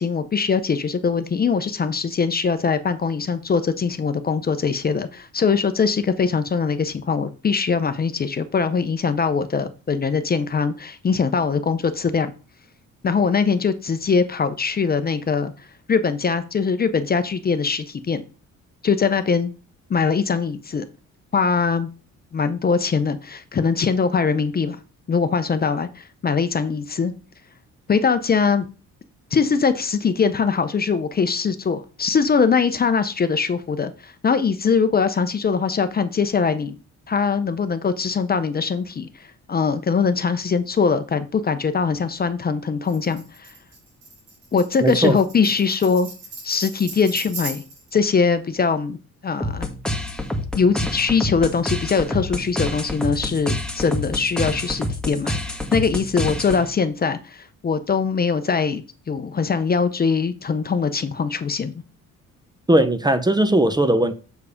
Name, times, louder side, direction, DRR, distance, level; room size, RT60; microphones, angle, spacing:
voice 1, 0.0-12.3 13.0-15.5 15.9-18.2 18.8-19.5 19.9-20.8 21.3-21.9 22.3-24.8 25.1-27.1 27.9-28.6 29.3-36.8 37.1-43.5 44.5-46.1 46.4-47.6 47.9-49.0 49.2-49.7 50.5-61.7, left 5 dB, 30° left, 0.6 m, -22 dB
Tambourine, 42.9-47.9, right 3 dB, 70° right, 4.5 m, -37 dB
voice 2, 44.8-45.2 62.7-64.1, right 1 dB, 15° right, 0.7 m, -18 dB
sound 1, 49.4-56.9, left 1 dB, 5° left, 1.3 m, -28 dB
6.9 x 4.7 x 5.0 m
cardioid pair, 90°, 30 cm